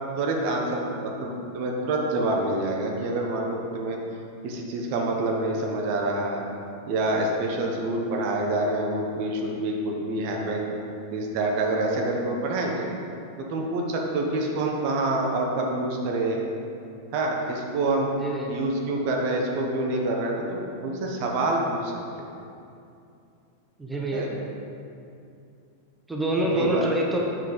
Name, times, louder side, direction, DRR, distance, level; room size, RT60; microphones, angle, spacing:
voice 1, 0.2-4.0 4.4-6.4 6.9-10.8 11.1-12.9 13.5-16.4 17.1-18.1 18.5-22.3 24.1-24.3 26.4-26.9, right 2 dB, 45° right, 0 dB, 1.1 m, -27 dB
voice 2, 18.2-18.5 23.8-24.4 26.1-27.2, right 1 dB, 5° right, -2 dB, 1.0 m, -26 dB
7.5 x 7.4 x 4.0 m, 2.6 s
figure-of-eight pair, 90°, 0 cm